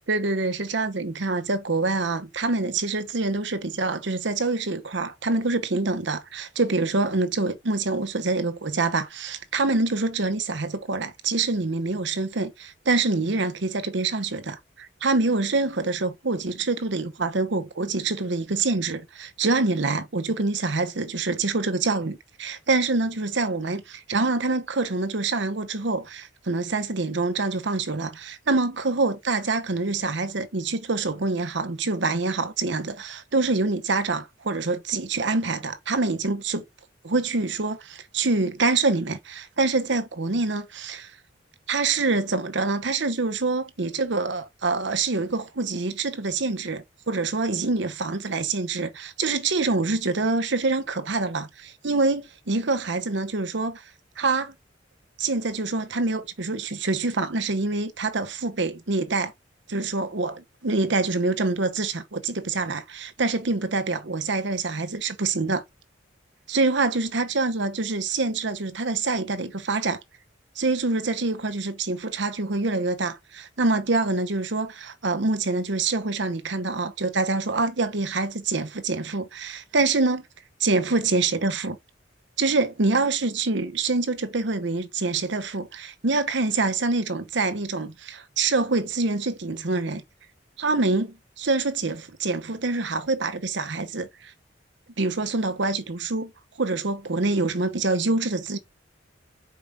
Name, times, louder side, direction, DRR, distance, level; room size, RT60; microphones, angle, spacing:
voice 1, 0.1-36.6 37.0-41.1 41.7-53.8 54.2-54.5 55.2-59.3 59.7-65.6 66.5-70.0 70.6-80.3 80.6-81.8 82.4-90.0 90.6-94.3 95.0-96.3 96.6-98.6, right 3 dB, 65° right, 0.9 m, -26 dB
5.0 x 4.6 x 5.2 m
head